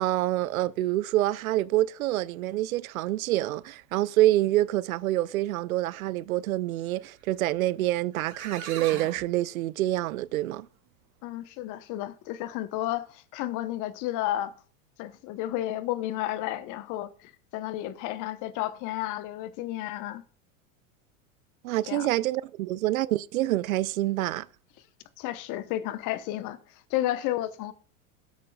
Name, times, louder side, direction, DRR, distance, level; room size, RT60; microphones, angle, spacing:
voice 1, 0.0-10.7 21.6-24.5, right 15 dB, 85° right, 0.6 m, -27 dB
sound 1, 7.8-7.9 8.1-9.2, right 6 dB, 45° right, 5.1 m, -39 dB
voice 2, 11.2-14.5 15.0-20.2 21.9-22.1 25.2-26.6 26.9-27.7, left 14 dB, 50° left, 1.0 m, -32 dB
18.0 x 8.3 x 2.3 m
hypercardioid pair, 110°, 41 cm